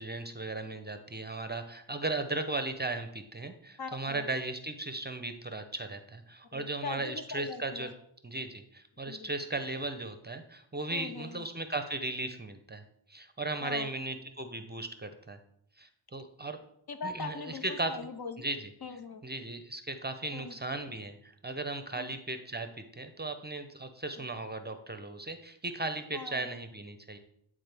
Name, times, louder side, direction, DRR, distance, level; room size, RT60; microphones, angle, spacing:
voice 1, 0.0-7.9 8.2-12.8 13.1-15.4 15.8-16.6 17.0-17.9 18.4-18.7 19.2-27.2, right 2 dB, 20° right, 8 dB, 0.6 m, -37 dB
voice 2, 3.8-4.3 6.5-7.9 9.1-9.3 10.9-11.4 13.6-13.9 16.9-18.5 18.8-19.2 20.3-20.6 22.0-22.2 26.1-26.5, left 4 dB, 50° left, 8 dB, 0.8 m, -41 dB
9.9 x 3.7 x 3.4 m, 0.73 s
cardioid pair, 55°, 50 cm